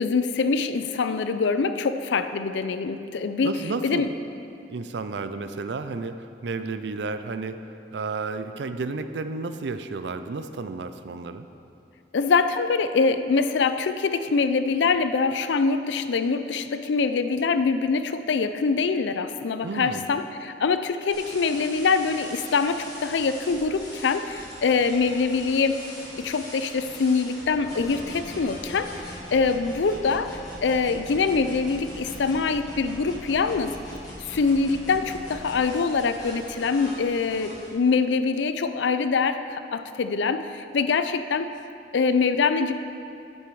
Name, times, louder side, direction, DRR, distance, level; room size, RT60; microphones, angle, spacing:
voice 1, 0.0-3.5 3.8-4.1 12.1-25.8 26.2-33.8 34.3-41.5 41.9-42.7, left 4 dB, 85° left, 10 dB, 0.4 m, -24 dB
voice 2, 3.4-4.1 4.7-7.6 7.9-11.5 19.6-20.1, right 4 dB, 75° right, 10 dB, 0.5 m, -32 dB
sound 1, 21.1-37.7, equal, 20° left, 1.7 m, -41 dB
8.8 x 7.6 x 4.8 m, 2.6 s
head